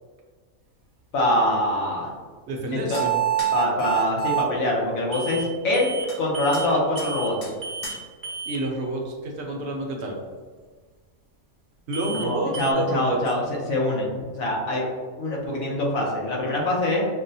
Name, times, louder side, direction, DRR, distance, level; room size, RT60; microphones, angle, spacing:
voice 1, 1.1-2.1 2.7-3.0 3.5-7.4 12.3-14.8 15.2-17.1, left 1 dB, 70° left, -2 dB, 1.2 m, -24 dB
voice 2, 2.5-3.2 8.5-10.2 11.9-13.2, right 2 dB, 65° right, 0 dB, 0.7 m, -29 dB
sound 1, 2.9-3.1 3.4-3.6 6.1-6.2 6.5-6.7 7.0-7.1 7.4-7.6 7.8-8.0, left 3 dB, 45° left, 1.0 m, -38 dB
sound 2, 2.9-4.5 5.1-5.5 5.7-6.1 6.3-6.7 6.9-7.3 7.6-8.0 8.2-8.6 11.9-12.3 12.5-12.7, right 9 dB, 25° right, 0.4 m, -28 dB
5.8 x 2.1 x 2.6 m, 1.5 s
omnidirectional pair, 1.5 m